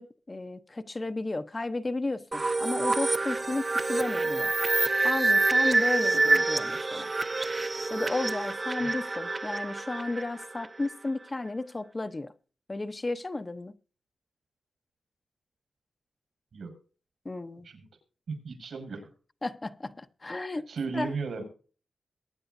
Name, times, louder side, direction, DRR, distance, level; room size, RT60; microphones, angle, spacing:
voice 1, 0.0-4.5 5.0-7.1 7.9-12.3 12.7-13.7 17.2-17.7 19.4-20.7 20.9-21.1, left 2 dB, 25° left, 0.7 m, -33 dB
sound 1, 2.3-10.9, right 3 dB, 30° right, 0.7 m, -27 dB
voice 2, 18.3-19.1 20.7-21.4, right 4 dB, 80° right, 5.7 m, -35 dB
23.0 x 9.4 x 2.6 m
wide cardioid pair, 110°, 0 cm